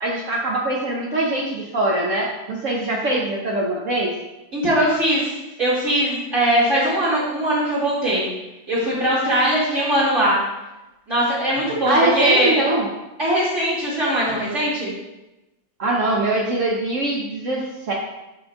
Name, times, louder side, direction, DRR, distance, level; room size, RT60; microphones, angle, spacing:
voice 1, 0.0-4.1 11.8-12.9 15.8-17.9, right 1 dB, 60° right, -2 dB, 0.9 m, -22 dB
voice 2, 4.5-5.3 5.6-8.3 8.7-10.4 11.1-12.6 13.2-14.9, right 1 dB, 40° right, -9 dB, 2.6 m, -20 dB
6.1 x 5.5 x 3.5 m, 0.99 s
omnidirectional pair, 2.0 m